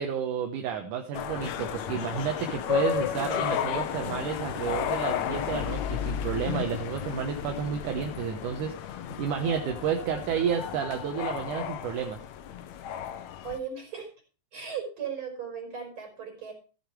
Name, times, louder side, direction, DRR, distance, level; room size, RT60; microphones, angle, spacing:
voice 1, 0.0-12.2, right 7 dB, 75° right, 4 dB, 2.6 m, -31 dB
sound 1, 1.1-13.6, left 9 dB, 70° left, 1.9 m, -33 dB
voice 2, 13.4-14.1 14.5-16.5, right 6 dB, 40° right, 2 dB, 4.9 m, -36 dB
14.0 x 7.3 x 4.7 m, 0.36 s
omnidirectional pair, 3.8 m